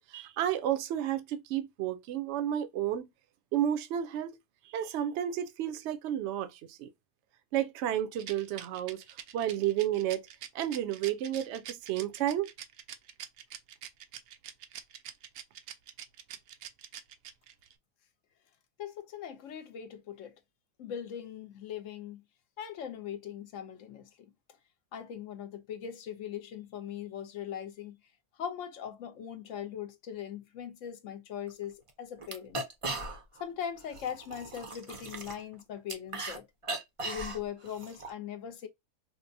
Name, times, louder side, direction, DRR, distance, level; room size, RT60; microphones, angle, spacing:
voice 1, 0.0-3.1 3.5-4.4 4.7-6.9 7.5-9.0 9.3-10.3 10.5-12.5, right 11 dB, 60° right, 0.8 m, -31 dB
Rattle, 8.2-17.7, right 10 dB, 80° right, 1.1 m, -45 dB
voice 2, 18.8-20.3 20.8-22.2 22.6-24.3 24.9-28.0 28.4-32.6 33.4-36.5 37.0-38.7, left 9 dB, 65° left, 0.9 m, -40 dB
sound 1, 31.5-31.6 31.9-32.0 32.2-33.4 33.8-36.4 36.6-38.1, right 2 dB, 40° right, 0.5 m, -38 dB
4.5 x 2.1 x 2.6 m
omnidirectional pair, 1.5 m